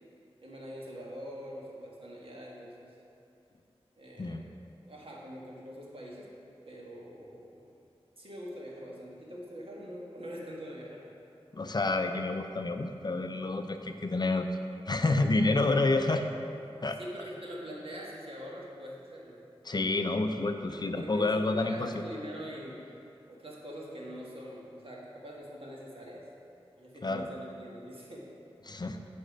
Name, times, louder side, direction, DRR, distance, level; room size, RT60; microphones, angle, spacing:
voice 1, 0.4-2.9 4.0-4.4 4.9-6.3 6.7-7.6 8.2-11.0 17.0-19.4 20.7-22.8 23.3-26.2 26.8-28.3, equal, 60° right, -4 dB, 1.6 m, -43 dB
voice 2, 11.5-14.5 14.9-16.3 16.8-17.0 19.6-21.9 27.0-27.3 28.7-29.0, left 2 dB, 40° left, 6 dB, 0.5 m, -29 dB
8.9 x 4.3 x 5.3 m, 2.6 s
wide cardioid pair, 55°, 11 cm